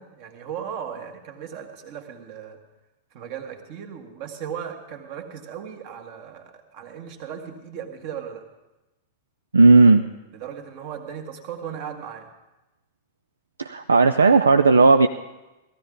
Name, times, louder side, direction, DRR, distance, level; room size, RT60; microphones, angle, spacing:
voice 1, 0.0-2.6 3.1-8.5 10.3-12.3, right 8 dB, 45° right, 5 dB, 1.7 m, -37 dB
voice 2, 9.5-10.0 13.6-15.1, right 3 dB, 75° right, 8 dB, 0.5 m, -14 dB
18.0 x 14.5 x 3.8 m, 1.0 s
figure-of-eight pair, 95°, 0 cm